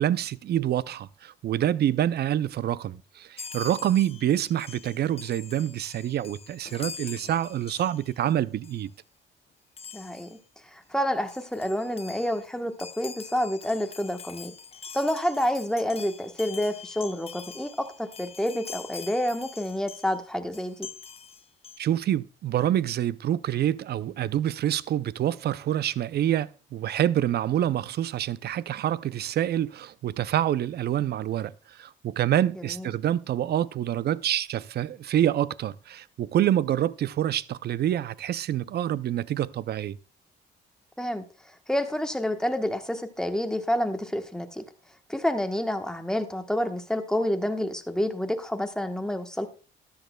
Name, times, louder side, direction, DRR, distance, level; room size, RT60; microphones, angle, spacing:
voice 1, 0.0-8.9 21.8-40.0, right 11 dB, 55° right, 0.4 m, -27 dB
Chime, 3.4-8.3 8.6-8.9 9.8-10.4 10.9-11.0 11.2-20.2 20.5-21.8, left 6 dB, 30° left, 0.6 m, -44 dB
voice 2, 9.9-10.4 10.7-14.5 14.9-20.9 32.7-32.9 41.0-41.3 41.7-44.6 45.1-49.5, left 1 dB, 5° left, 1.1 m, -28 dB
13.5 x 10.5 x 2.3 m
cardioid pair, 90°, 20 cm